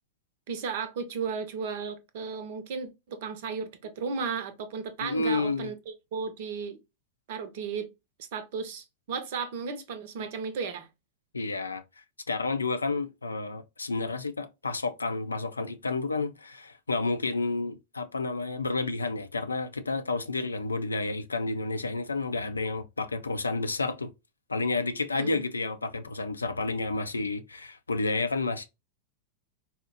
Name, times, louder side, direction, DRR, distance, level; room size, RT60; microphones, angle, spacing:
voice 1, 0.5-6.8 7.3-7.9 8.3-10.9 25.1-25.4, right 5 dB, 55° right, 0.6 m, -34 dB
voice 2, 5.0-5.7 11.3-11.8 12.3-24.1 24.5-28.7, left 3 dB, 80° left, 0.4 m, -30 dB
4.1 x 2.1 x 2.7 m
figure-of-eight pair, 90°, 0 cm